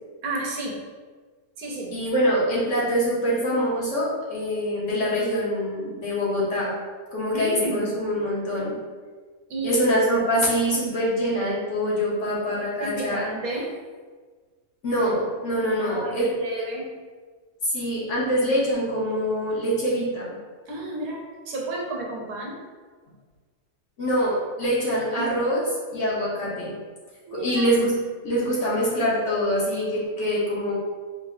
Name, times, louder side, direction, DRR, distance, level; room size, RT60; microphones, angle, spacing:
voice 1, 0.2-0.8 1.6-2.0 7.3-7.9 9.5-9.8 12.8-13.7 15.8-16.9 20.7-22.6 25.1-25.3 27.3-27.7, right 2 dB, 75° right, -1 dB, 1.2 m, -31 dB
voice 2, 1.9-6.8 7.1-8.8 9.6-13.2 14.8-16.3 17.6-20.4 24.0-25.6 25.9-26.7 27.3-28.0 28.2-30.8, equal, 55° left, -6 dB, 1.2 m, -24 dB
4.4 x 2.0 x 3.5 m, 1.5 s
omnidirectional pair, 1.6 m